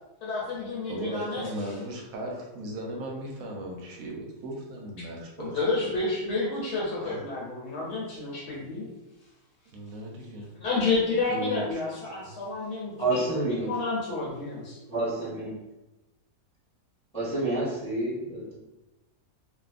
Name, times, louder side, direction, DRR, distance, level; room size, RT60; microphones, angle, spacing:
voice 1, 0.2-1.5 5.4-8.9 10.6-14.8, left 3 dB, 80° left, -6 dB, 1.2 m, -30 dB
voice 2, 0.9-5.9 7.0-7.2 9.7-10.5 11.3-11.8, right 1 dB, 70° right, -1 dB, 0.9 m, -37 dB
voice 3, 13.0-13.7 14.9-15.6 17.1-18.6, right 2 dB, 5° left, -10 dB, 0.9 m, -29 dB
2.6 x 2.4 x 2.4 m, 1.0 s
omnidirectional pair, 1.7 m